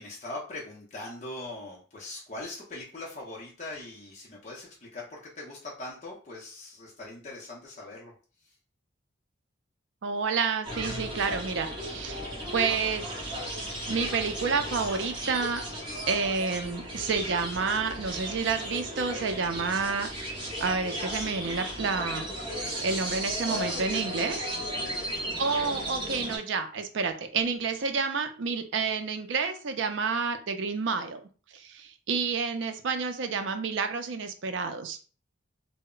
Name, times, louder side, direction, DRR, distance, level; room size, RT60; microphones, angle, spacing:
voice 1, 0.0-8.1 8.4-8.5 24.5-25.5, left 2 dB, 35° left, -4 dB, 0.6 m, -41 dB
voice 2, 10.0-12.2 12.5-13.3 13.9-15.6 16.1-20.1 20.6-22.3 22.8-24.5 25.4-31.2 31.5-35.0, right 5 dB, 70° right, 8 dB, 0.4 m, -29 dB
sound 1, 10.6-26.4, right 1 dB, 25° right, 0.8 m, -35 dB
2.1 x 2.0 x 3.7 m, 0.38 s
head